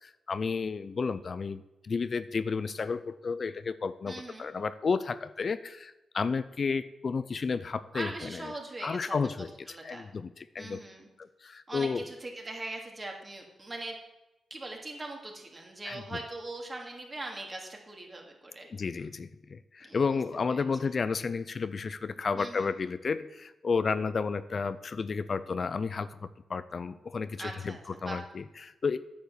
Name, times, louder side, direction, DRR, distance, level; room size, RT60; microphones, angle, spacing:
voice 1, 0.0-8.4 8.8-9.5 9.8-10.8 11.2-12.0 15.9-16.0 18.7-26.2 26.5-27.7 28.0-29.0, left 5 dB, 50° left, 14 dB, 0.5 m, -32 dB
voice 2, 4.1-4.5 7.9-9.2 9.7-10.1 10.6-11.1 11.7-13.9 14.5-18.7 19.8-20.2 20.5-20.6 22.3-22.7 27.4-28.2, right 2 dB, 30° right, 1 dB, 2.8 m, -41 dB
9.2 x 7.3 x 7.1 m, 0.99 s
cardioid pair, 60°, 0 cm